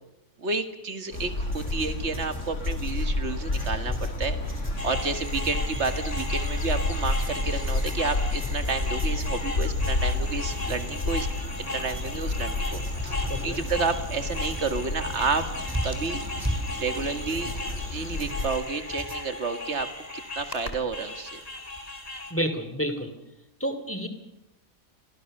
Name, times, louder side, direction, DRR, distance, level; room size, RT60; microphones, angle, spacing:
voice 1, 0.4-11.3 11.6-15.5 15.8-16.3 16.8-17.5 17.9-21.4, right 4 dB, 55° right, 9 dB, 2.2 m, -31 dB
sound 1, 1.1-18.5, left 2 dB, 60° left, 2.5 m, -30 dB
sound 2, 1.1-19.2, equal, 10° right, 3.9 m, -39 dB
sound 3, 4.8-22.3, left 2 dB, 25° left, 3.3 m, -37 dB
voice 2, 13.3-13.6 22.3-23.1 23.6-24.1, equal, 10° left, 9 dB, 2.6 m, -29 dB
29.5 x 24.0 x 6.7 m, 0.89 s
omnidirectional pair, 1.4 m